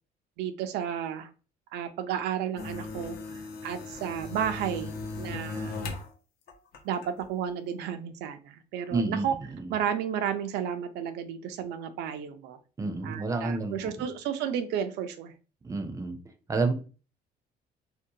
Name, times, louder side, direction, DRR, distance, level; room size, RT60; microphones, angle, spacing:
voice 1, 0.4-1.3 1.7-5.8 6.8-9.3 9.7-12.6 13.0-15.3, right 8 dB, 80° right, 10 dB, 0.4 m, -32 dB
sound 1, 2.6-6.1 6.5-7.2, left 3 dB, 65° left, 0.7 m, -38 dB
voice 2, 8.9-9.2 9.5-9.8 12.8-13.8 15.6-16.2 16.5-16.7, right 3 dB, 20° right, 6 dB, 0.5 m, -29 dB
2.7 x 2.1 x 2.7 m, 0.35 s
cardioid pair, 110°, 17 cm